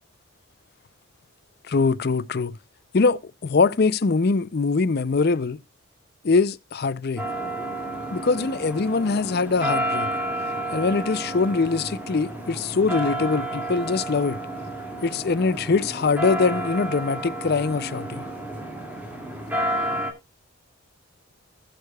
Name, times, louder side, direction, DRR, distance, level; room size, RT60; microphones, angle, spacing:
voice 1, 1.7-2.6 2.9-5.6 6.2-7.2 8.1-10.1 10.7-14.4 15.0-18.2, left 4 dB, 45° left, 0.5 m, -23 dB
sound 1, 7.2-20.1, right 1 dB, 10° right, 2.2 m, -31 dB
19.5 x 6.5 x 2.3 m
head